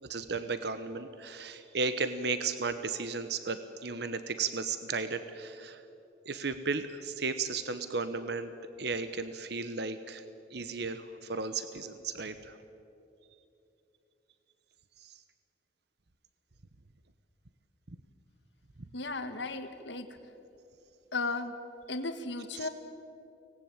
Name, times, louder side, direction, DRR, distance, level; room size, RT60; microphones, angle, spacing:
voice 1, 0.0-5.8 6.2-8.5 8.8-10.2 10.5-12.6 15.0-15.2 22.6-22.7, right 4 dB, 60° right, 10 dB, 1.0 m, -35 dB
voice 2, 18.9-20.1 21.1-21.6 21.9-22.7, left 3 dB, 70° left, 7 dB, 1.6 m, -35 dB
25.0 x 19.0 x 9.0 m, 2.8 s
head